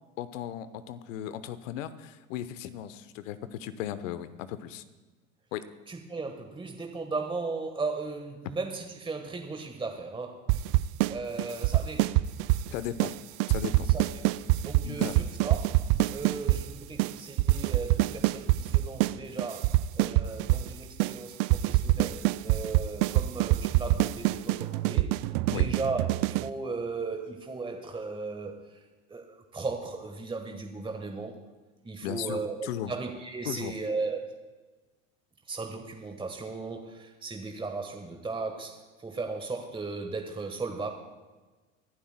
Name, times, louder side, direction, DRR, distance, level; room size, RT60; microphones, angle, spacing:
voice 1, 0.2-4.8 5.5-5.6 12.7-13.1 13.5-13.9 14.8-15.1 25.5-25.7 32.0-32.9 33.4-33.7, left 11 dB, 70° left, 13 dB, 0.9 m, -36 dB
voice 2, 5.9-10.4 11.1-12.2 13.9-14.2 14.5-15.8 16.1-25.1 25.4-28.6 29.1-31.4 31.8-34.2 35.5-40.9, right 3 dB, 15° right, 3 dB, 1.3 m, -36 dB
sound 1, 10.5-11.1 11.4-12.7 13.0-13.1 13.4-16.6 17.0-17.1 17.4-19.1 19.4-20.7 21.0-21.1 21.4-26.5, right 18 dB, 55° right, 0.5 m, -24 dB
24.5 x 11.5 x 2.2 m, 1.3 s
hypercardioid pair, 80°, 40 cm